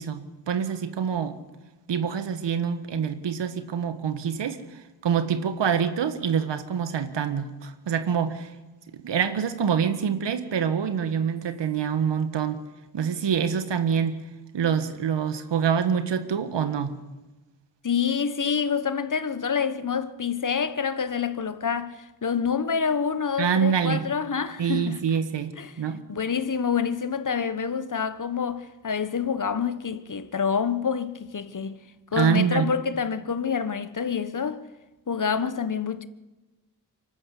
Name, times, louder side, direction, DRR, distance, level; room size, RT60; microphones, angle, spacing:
voice 1, 0.0-1.4 1.9-8.5 8.9-12.6 12.9-14.2 14.5-17.0 23.4-24.0 24.6-26.0 32.1-32.7, right 7 dB, 75° right, 1.7 m, -26 dB
voice 2, 17.8-25.0 25.6-25.7 26.1-31.8 32.1-34.7 35.1-36.1, left 6 dB, 45° left, 1.3 m, -27 dB
24.5 x 13.0 x 8.3 m
supercardioid pair, 40°, 42 cm